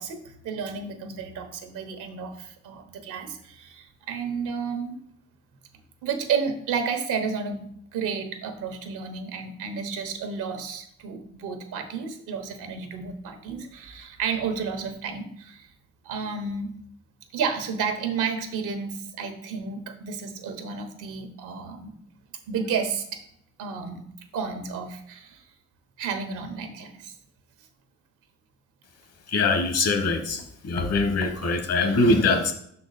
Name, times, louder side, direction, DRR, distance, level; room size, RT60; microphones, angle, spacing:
voice 1, 0.0-5.0 6.0-15.7 16.0-16.7 17.3-21.9 22.5-23.2 23.6-24.0 24.3-25.4 26.0-27.1, right 6 dB, 90° right, 6 dB, 1.1 m, -31 dB
voice 2, 29.3-32.5, left 3 dB, 55° left, 7 dB, 1.1 m, -23 dB
6.2 x 4.4 x 4.1 m, 0.68 s
cardioid pair, 90°, 30 cm